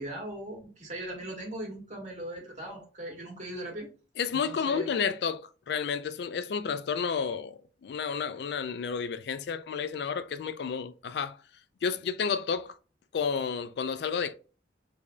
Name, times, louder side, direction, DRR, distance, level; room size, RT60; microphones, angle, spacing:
voice 1, 0.0-3.9 4.3-4.9, right 1 dB, 40° right, 1.5 m, -39 dB
voice 2, 4.2-11.4 11.8-12.8 13.1-14.3, left 6 dB, 65° left, 0.3 m, -31 dB
4.8 x 2.7 x 2.2 m
head